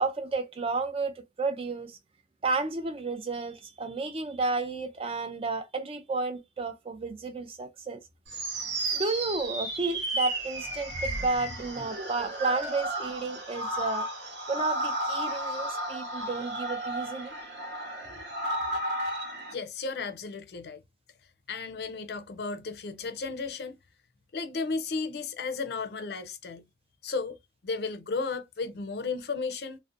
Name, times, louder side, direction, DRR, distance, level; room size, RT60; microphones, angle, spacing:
voice 1, 0.0-2.0 2.4-8.0 8.9-14.1 14.5-17.3, right 3 dB, 30° right, 0.3 m, -32 dB
sound 1, 8.3-19.5, right 1 dB, 85° right, 1.0 m, -33 dB
voice 2, 19.5-20.8 21.5-23.8 24.3-26.6 27.0-27.4 27.6-29.8, left 4 dB, 65° left, 0.4 m, -34 dB
2.5 x 2.1 x 2.4 m
head